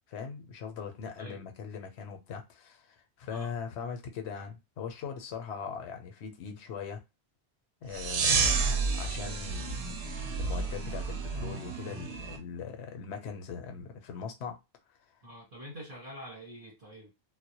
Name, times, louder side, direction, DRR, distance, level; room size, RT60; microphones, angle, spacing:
voice 1, 0.0-7.0 7.8-14.6, left 6 dB, 85° left, 0.9 m, -41 dB
sound 1, 7.9-12.4, right 4 dB, 85° right, 0.9 m, -30 dB
voice 2, 15.2-17.1, equal, 65° right, 1.2 m, -46 dB
2.1 x 2.1 x 2.7 m
omnidirectional pair, 1.1 m